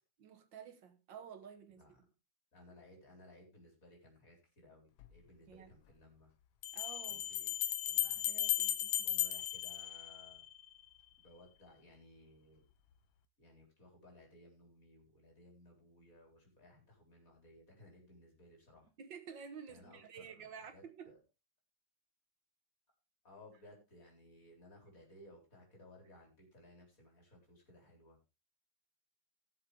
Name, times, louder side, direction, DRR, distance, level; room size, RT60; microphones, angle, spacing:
voice 1, 0.2-1.8 5.5-5.7 6.7-7.3 8.2-9.1 19.0-21.1, right 7 dB, 70° right, 2.0 m, -51 dB
voice 2, 2.5-6.3 7.1-7.5 7.8-8.3 9.0-10.4 11.2-12.7 13.4-18.9 19.7-21.2 23.2-28.2, left 1 dB, 45° left, 4.6 m, -60 dB
sound 1, 5.0-5.1 6.6-10.6, left 12 dB, 85° left, 1.7 m, -36 dB
16.5 x 7.4 x 3.4 m
omnidirectional pair, 2.1 m